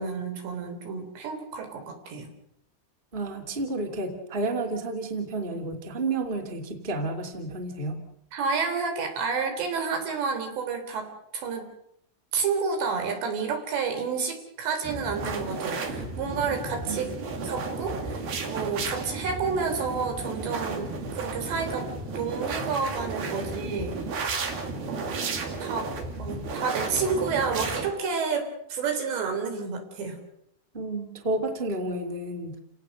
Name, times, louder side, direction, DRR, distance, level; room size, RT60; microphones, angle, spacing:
voice 1, 0.0-2.3 8.3-11.7 12.3-17.1 17.4-24.0 24.9-25.2 25.6-25.9 26.2-30.2, right 5 dB, 85° right, 5 dB, 5.8 m, -30 dB
voice 2, 3.1-8.0 16.9-17.1 30.7-32.6, right 2 dB, 15° right, 4 dB, 2.2 m, -31 dB
sound 1, 14.8-27.9, right 3 dB, 60° right, 4.4 m, -33 dB
30.0 x 18.0 x 6.5 m, 0.78 s
omnidirectional pair, 4.9 m